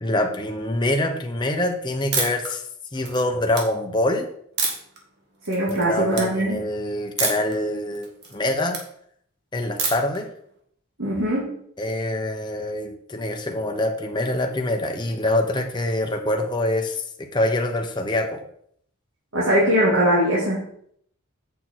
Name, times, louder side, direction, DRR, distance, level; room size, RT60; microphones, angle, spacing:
voice 1, 0.0-2.6 2.9-4.3 5.7-8.8 9.5-10.3 11.8-18.4, left 1 dB, 20° left, 3 dB, 0.9 m, -25 dB
sound 1, 2.1-2.5 2.9-3.6 4.6-5.0 5.4-5.8 6.1-6.3 7.2-7.5 7.9-8.8 9.8-10.2, right 4 dB, 50° right, 1.8 m, -26 dB
voice 2, 5.5-6.6 11.0-11.5 19.3-20.6, equal, 70° right, -6 dB, 2.5 m, -21 dB
8.1 x 6.1 x 4.5 m, 0.66 s
head